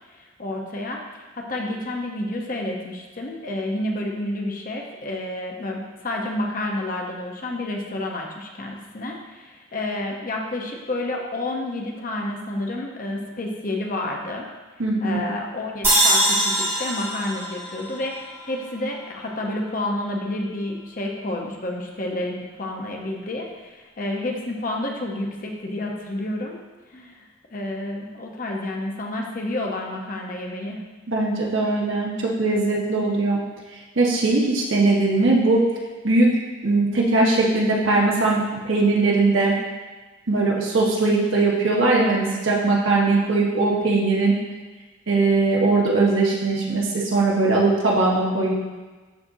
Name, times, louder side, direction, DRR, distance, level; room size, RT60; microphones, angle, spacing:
voice 1, 0.1-14.5 15.0-26.6 26.9-27.3 27.5-30.8, left 1 dB, 45° left, 0 dB, 0.8 m, -30 dB
voice 2, 14.8-15.2 31.1-33.4 33.9-35.7 36.0-39.6 40.3-44.4 45.1-48.5, right 3 dB, 75° right, -3 dB, 1.5 m, -20 dB
sound 1, 15.8-19.1, right 1 dB, 10° right, 1.5 m, -23 dB
12.0 x 4.3 x 2.7 m, 1.3 s
head